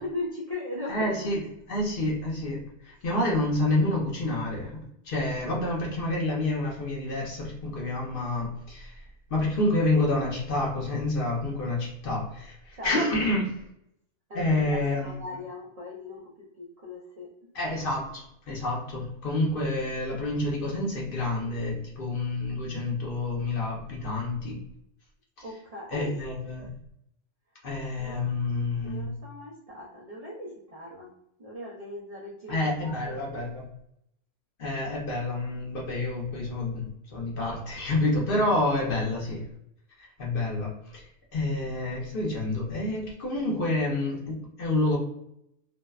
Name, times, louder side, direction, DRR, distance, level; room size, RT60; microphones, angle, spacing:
voice 1, 0.0-1.3 12.8-13.0 14.3-17.3 25.4-26.2 28.0-28.2 28.8-31.1 31.4-33.2, left 2 dB, 60° right, -3 dB, 0.4 m, -38 dB
voice 2, 0.9-1.4 1.7-4.8 5.0-9.0 9.3-13.6 14.3-15.2 17.5-24.6 25.9-26.7 27.6-29.1 32.5-33.6 34.6-39.4 40.0-45.0, left 2 dB, 55° left, -3 dB, 0.8 m, -28 dB
2.6 x 2.0 x 2.3 m, 0.75 s
omnidirectional pair, 1.3 m